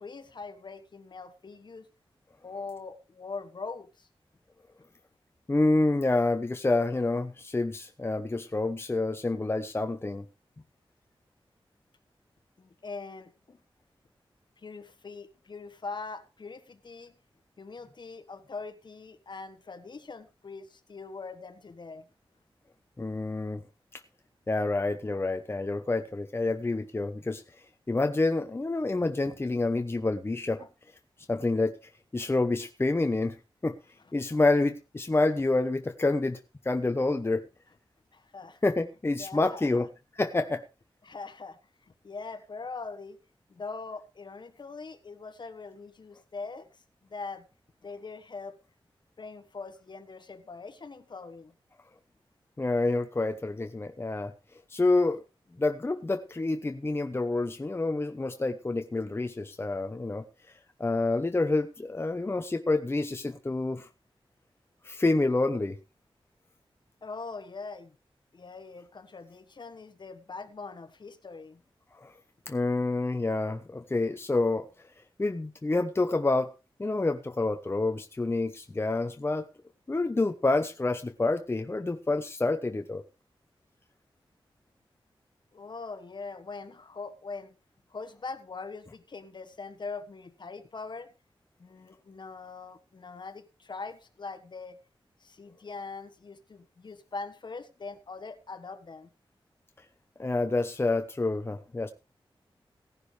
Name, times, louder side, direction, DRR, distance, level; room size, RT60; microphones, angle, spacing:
voice 1, 0.0-1.9 2.4-4.1 12.6-13.6 14.6-17.2 17.6-22.1 30.6-30.7 38.1-38.6 39.2-39.9 41.0-43.2 43.5-46.7 47.0-47.4 47.8-48.6 49.2-51.5 67.0-68.0 68.3-71.6 85.5-87.5 87.9-91.1 91.6-94.8 95.2-99.1, left 4 dB, 55° left, 10 dB, 1.4 m, -42 dB
voice 2, 5.5-10.2 23.0-23.6 23.9-24.0 24.5-27.4 27.9-30.6 31.3-31.8 32.1-33.3 33.6-33.8 34.1-36.4 36.6-37.4 38.6-39.9 40.2-40.6 52.6-54.3 54.7-55.2 55.6-60.2 60.8-63.9 64.8-65.8 71.9-72.1 72.5-74.7 75.2-76.5 76.8-79.5 79.9-83.0 100.2-101.9, left 2 dB, 25° left, 7 dB, 0.9 m, -28 dB
17.0 x 11.0 x 3.3 m, 0.29 s
wide cardioid pair, 95°, 9 cm